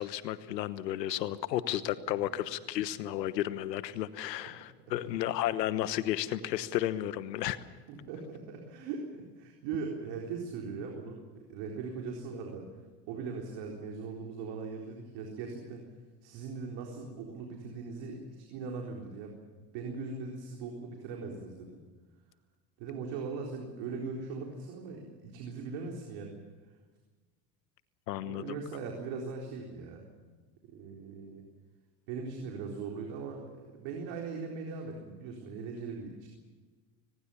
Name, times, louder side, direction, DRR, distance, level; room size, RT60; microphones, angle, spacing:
voice 1, 0.0-7.6 28.1-28.5, left 13 dB, 90° left, 14 dB, 1.2 m, -33 dB
voice 2, 7.9-11.2 11.5-12.7 13.1-15.8 16.2-21.8 22.8-26.4 28.2-30.0 30.7-31.4 32.1-36.3, right 4 dB, 65° right, 1 dB, 4.2 m, -40 dB
23.5 x 20.0 x 7.1 m, 1.4 s
hypercardioid pair, 85°, 48 cm